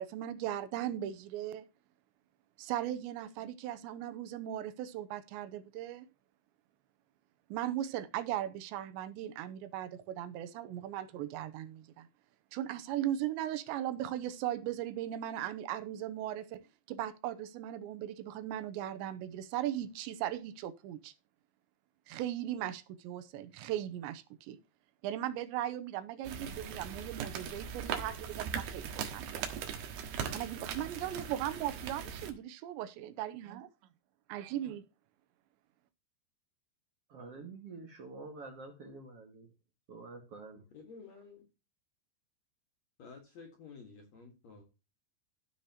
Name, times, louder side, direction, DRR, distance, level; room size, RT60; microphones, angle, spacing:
voice 1, 0.0-1.7 2.6-6.1 7.5-12.1 12.5-21.1 22.1-24.6 25.0-29.4 30.3-33.7 34.3-34.8, right 12 dB, 90° right, 3.0 m, -38 dB
sound 1, 26.2-32.3, right 7 dB, 70° right, 3.1 m, -40 dB
voice 2, 37.1-39.5 39.9-40.6, right 3 dB, 50° right, 2.0 m, -47 dB
voice 3, 40.7-41.5 43.0-44.6, left 4 dB, 50° left, 2.3 m, -52 dB
15.5 x 5.7 x 2.9 m
omnidirectional pair, 5.2 m